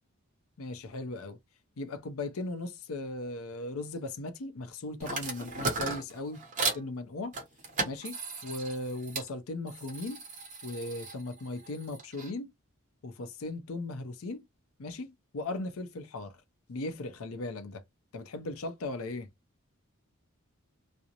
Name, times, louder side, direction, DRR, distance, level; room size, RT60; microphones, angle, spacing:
voice 1, 0.6-1.4 1.8-6.4 6.7-7.3 7.9-10.2 10.6-12.5 13.0-14.4 14.8-16.4 16.7-17.8 18.1-19.3, left 2 dB, 75° left, 0.5 m, -37 dB
sound 1, 5.0-6.9 7.3-9.3 9.7-12.3, right 3 dB, 35° right, 0.8 m, -36 dB
2.4 x 2.0 x 2.8 m
head